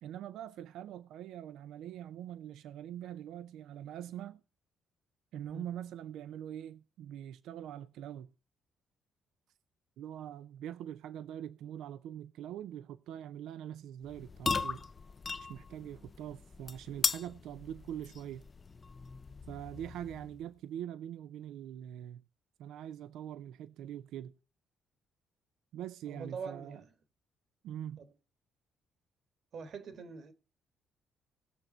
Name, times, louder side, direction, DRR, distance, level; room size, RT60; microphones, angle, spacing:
voice 1, 0.0-4.4 5.3-8.3 10.0-14.8 15.4-18.4 19.5-22.2 22.6-24.3 25.7-26.8 27.6-28.0, right 10 dB, 80° right, 0.4 m, -43 dB
sound 1, 14.0-20.4, left 4 dB, 35° left, 0.5 m, -38 dB
voice 2, 26.1-26.9 28.0-28.1 29.5-30.3, right 5 dB, 60° right, 1.7 m, -43 dB
18.0 x 6.6 x 4.3 m
supercardioid pair, 75°, 0 cm